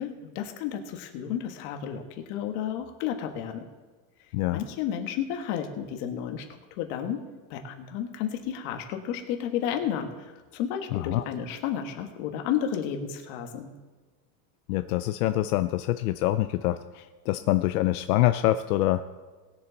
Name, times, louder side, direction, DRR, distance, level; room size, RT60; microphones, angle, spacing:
voice 1, 0.0-3.6 4.5-6.4 6.7-7.2 7.5-13.7, left 9 dB, 55° left, 5 dB, 1.6 m, -32 dB
voice 2, 10.9-11.2 14.7-19.0, left 15 dB, 85° left, 11 dB, 0.6 m, -25 dB
19.5 x 7.2 x 4.0 m, 1.3 s
supercardioid pair, 165°, 43 cm